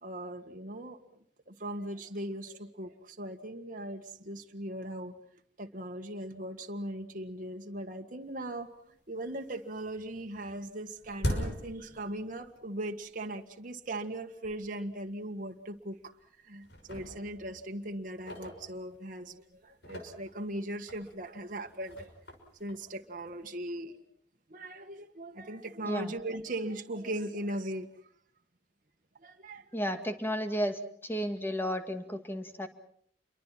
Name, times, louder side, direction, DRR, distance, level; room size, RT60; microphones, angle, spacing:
voice 1, 0.0-1.0 1.5-5.1 5.6-16.1 16.4-22.1 22.6-24.0 24.5-27.9 29.2-30.0, right 1 dB, 50° right, 3 dB, 1.8 m, -39 dB
sound 1, 8.4-8.5 8.9-9.5 9.7-12.7 13.0-13.1 13.8-13.9 14.4-14.5 14.9-15.0 15.7-16.3 16.6-19.2 19.7-23.6, equal, 70° left, 5.9 m, -41 dB
voice 2, 29.7-32.7, equal, 15° left, 7 dB, 2.1 m, -33 dB
29.0 x 23.5 x 5.9 m, 0.64 s
head